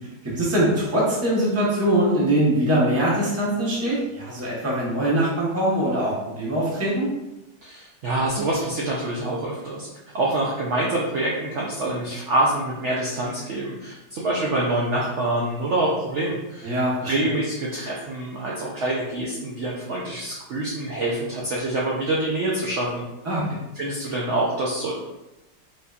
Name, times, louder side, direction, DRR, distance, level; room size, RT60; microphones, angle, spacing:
voice 1, 0.2-7.1 16.6-17.1 23.2-23.6, right 1 dB, 15° right, -6 dB, 0.5 m, -22 dB
voice 2, 7.6-9.9 10.1-16.7 17.0-23.0 23.7-24.9, right 1 dB, 80° right, -4 dB, 0.6 m, -26 dB
4.1 x 2.6 x 2.3 m, 0.97 s
omnidirectional pair, 1.9 m